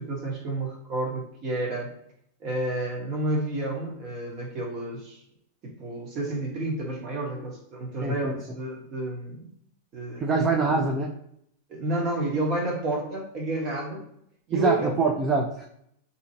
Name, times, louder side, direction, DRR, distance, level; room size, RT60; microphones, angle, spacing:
voice 1, 0.0-1.9 2.4-5.2 5.6-9.5 9.9-10.3 11.7-14.0 14.5-14.9, right 1 dB, 35° right, -1 dB, 1.2 m, -30 dB
voice 2, 8.0-8.3 10.2-11.1 14.5-15.7, right 4 dB, 20° right, 1 dB, 0.4 m, -24 dB
3.8 x 2.8 x 2.8 m, 0.72 s
supercardioid pair, 150°, 0 cm